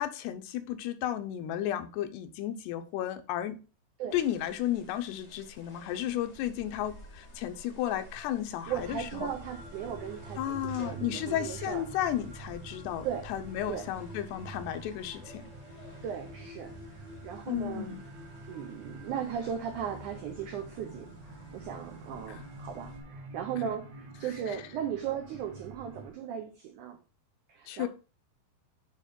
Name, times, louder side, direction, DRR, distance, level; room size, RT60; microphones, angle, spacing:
voice 1, 0.0-3.6 4.1-9.3 10.4-15.5 17.5-18.0 22.3-22.4 24.5-24.6 27.7-27.9, left 11 dB, 85° left, 2.9 m, -33 dB
sound 1, 4.1-23.0, left 2 dB, 60° left, 0.7 m, -53 dB
sound 2, 8.7-26.1, right 2 dB, 65° right, 1.8 m, -46 dB
voice 2, 8.7-11.8 13.0-13.3 13.7-13.9 16.0-18.0 18.5-27.0 27.5-27.9, right 8 dB, 85° right, 1.7 m, -37 dB
8.8 x 3.5 x 5.3 m
omnidirectional pair, 4.7 m